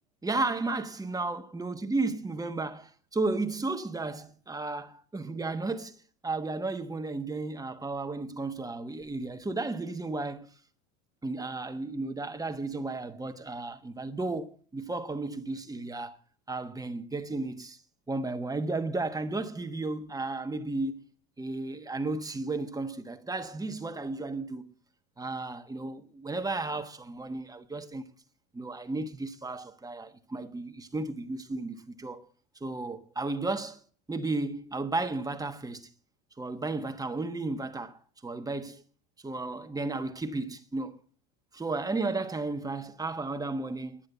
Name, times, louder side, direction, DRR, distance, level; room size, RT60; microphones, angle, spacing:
voice 1, 0.2-6.0 6.2-10.5 11.2-16.2 16.5-17.8 18.1-21.0 21.4-24.7 25.2-28.1 28.5-32.3 32.6-33.8 34.1-35.9 36.4-38.8 39.2-41.0 41.5-44.0, right 3 dB, 10° right, 1.3 m, -33 dB
10.5 x 10.0 x 7.9 m
supercardioid pair, 130°, 37 cm